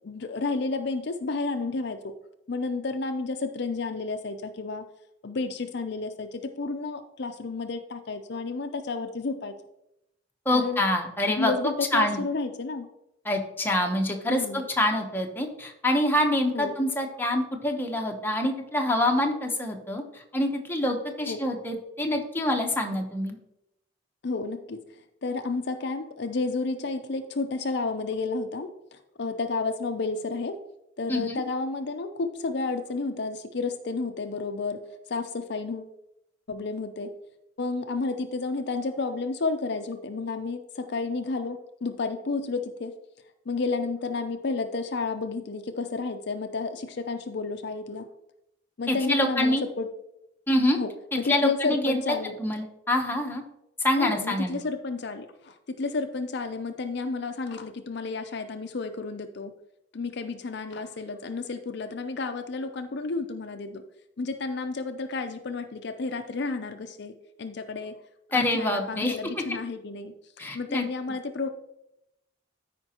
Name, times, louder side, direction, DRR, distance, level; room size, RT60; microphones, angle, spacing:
voice 1, 0.0-2.1 2.5-4.9 5.2-9.5 10.5-10.8 11.3-12.9 14.3-14.7 16.5-16.7 21.3-21.4 22.9-23.0 24.2-24.8 25.2-30.6 31.0-34.8 35.1-35.9 36.5-37.1 37.6-42.9 43.5-48.1 48.8-49.9 50.8-52.4 54.0-59.5 59.9-63.8 64.2-67.1 67.4-68.0 68.3-70.1 70.5-71.5, left 3 dB, 60° left, 7 dB, 0.6 m, -31 dB
voice 2, 10.5-11.5 11.9-12.2 13.2-23.4 31.1-31.4 48.9-49.6 50.5-50.8 51.3-51.9 52.4-53.4 53.8-54.6 68.3-69.2 70.4-70.9, left 1 dB, 10° left, 1 dB, 0.9 m, -26 dB
13.5 x 5.1 x 2.9 m, 0.83 s
head